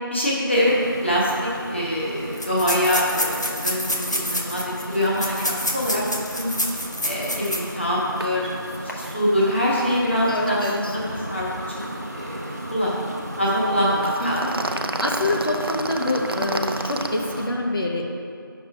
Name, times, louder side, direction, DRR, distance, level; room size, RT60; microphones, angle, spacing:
voice 1, 0.1-6.0 6.3-6.5 7.0-8.5 8.8-14.8, equal, 30° left, -6 dB, 1.2 m, -24 dB
sound 1, 0.5-17.5, equal, 45° right, 0.8 m, -35 dB
sound 2, 1.3-1.4 1.5-1.6 2.3-7.8 8.2-8.3 8.7-8.9, left 1 dB, 50° left, 1.1 m, -28 dB
sound 3, 8.2-8.3 8.6-8.8 9.0-9.2 14.0-17.1, right 2 dB, 85° right, 0.5 m, -29 dB
voice 2, 10.2-11.0 14.2-14.5 15.0-18.1, left 1 dB, 70° left, -1 dB, 1.2 m, -26 dB
8.5 x 6.5 x 3.4 m, 2.5 s
figure-of-eight pair, 175°, 12 cm